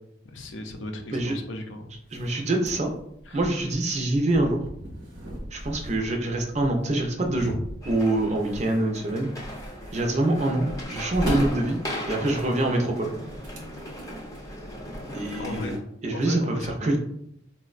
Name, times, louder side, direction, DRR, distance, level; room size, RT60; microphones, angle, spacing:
voice 1, 0.3-1.9 3.3-3.4 7.3-7.5 11.3-11.5 15.3-15.8 16.1-16.7, left 2 dB, 80° left, 4 dB, 0.5 m, -35 dB
sound 1, 1.9-14.7, equal, 80° right, 0.8 m, -39 dB
voice 2, 2.1-2.9 3.3-4.6 5.5-7.5 7.9-9.3 9.9-11.8 12.1-13.1 15.1-15.8 16.0-17.0, right 1 dB, 35° right, 2 dB, 0.5 m, -25 dB
sound 2, 7.8-15.8, equal, 20° left, 0.5 m, -37 dB
4.2 x 2.1 x 2.4 m, 0.73 s
head